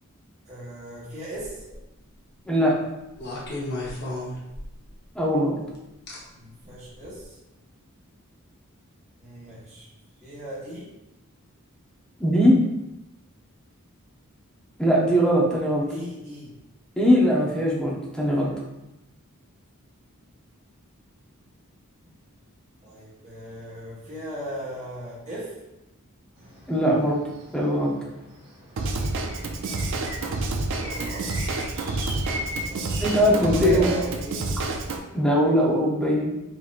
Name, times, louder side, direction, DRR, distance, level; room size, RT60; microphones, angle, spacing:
voice 1, 0.4-1.6 6.3-7.4 9.2-9.9 10.2-10.9 15.9-16.5 22.8-25.5 30.8-31.3 32.7-34.5, right 1 dB, 35° right, -9 dB, 1.2 m, -36 dB
sound 1, 1.4-1.8 3.2-4.9 6.1-6.2 7.0-7.2, left 2 dB, 50° left, 0.8 m, -33 dB
voice 2, 2.4-2.8 5.1-5.6 12.2-12.6 14.8-15.9 17.0-18.5 26.7-27.2 27.5-27.9 33.0-33.9 35.1-36.3, equal, 5° left, -4 dB, 0.7 m, -20 dB
sound 2, 26.4-33.1, left 1 dB, 80° right, 1.3 m, -40 dB
Drum kit / Drum, 28.8-35.0, right 2 dB, 60° right, 0.4 m, -29 dB
4.0 x 3.0 x 2.4 m, 0.95 s
head